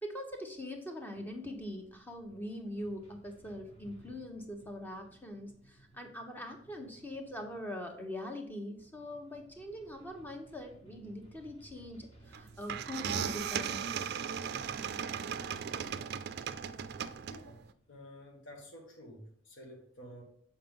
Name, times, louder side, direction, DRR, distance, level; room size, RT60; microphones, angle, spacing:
voice 1, 0.0-13.8, left 1 dB, 10° left, 2 dB, 0.9 m, -42 dB
sound 1, 1.1-18.6, right 2 dB, 35° left, 1.6 m, -61 dB
sound 2, 12.3-12.4 12.7-17.6, right 7 dB, 55° right, 0.3 m, -37 dB
voice 2, 17.2-20.2, equal, 85° left, 0 dB, 1.5 m, -51 dB
7.4 x 4.4 x 3.6 m, 0.65 s
head